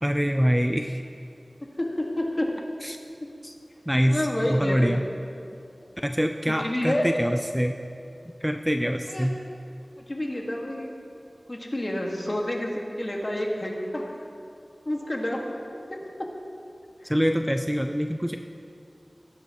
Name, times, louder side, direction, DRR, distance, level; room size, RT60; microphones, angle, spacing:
voice 1, 0.0-1.0 2.8-3.0 3.4-3.5 3.9-5.0 6.0-7.8 8.4-9.4 17.1-18.4, equal, 5° right, 5 dB, 0.5 m, -25 dB
voice 2, 1.8-2.5 4.1-4.9 6.5-7.1 9.1-9.3 10.0-10.9 11.5-14.1 14.9-16.1 17.0-17.1, left 1 dB, 40° left, -1 dB, 2.0 m, -29 dB
19.5 x 9.9 x 3.1 m, 2.5 s
wide cardioid pair, 40°, 0 cm